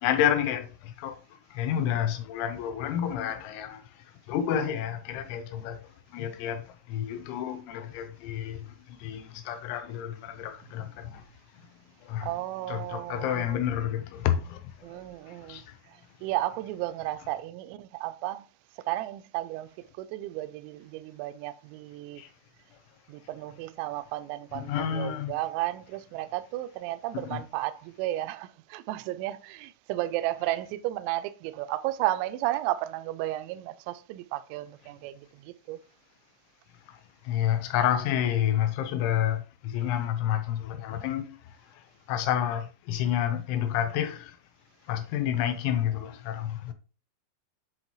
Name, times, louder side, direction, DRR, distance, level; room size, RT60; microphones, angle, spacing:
voice 1, 0.0-1.2 1.5-3.8 4.3-5.8 6.1-11.2 12.0-12.3 12.7-14.6 15.5-15.6 22.2-22.3 24.5-25.3 27.1-27.4 37.3-41.4 42.1-44.4 44.9-46.7, left 10 dB, 80° left, 3.2 m, -29 dB
voice 2, 12.2-13.6 14.8-15.7 16.2-18.5 18.9-22.2 23.1-35.8, right 15 dB, 85° right, 2.8 m, -33 dB
9.8 x 3.9 x 3.0 m
omnidirectional pair, 5.4 m